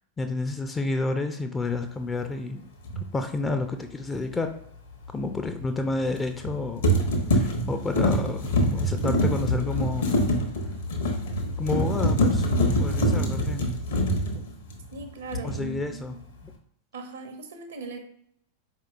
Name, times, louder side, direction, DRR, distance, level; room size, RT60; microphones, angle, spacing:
voice 1, 0.2-2.6 3.0-4.5 5.1-6.8 7.3-10.2 11.6-12.5 12.8-14.4 15.4-16.2 16.4-16.5, left 2 dB, 15° left, 6 dB, 0.3 m, -30 dB
sound 1, 2.8-3.0 6.2-6.5 6.8-15.0 15.3-15.8, equal, 60° left, 0.8 m, -25 dB
sound 2, 3.9-13.2, left 6 dB, 90° left, 1.0 m, -39 dB
voice 2, 14.9-16.2 16.9-18.0, right 2 dB, 65° right, 5 dB, 0.6 m, -38 dB
4.4 x 2.8 x 2.5 m, 0.69 s
figure-of-eight pair, 90°, 0 cm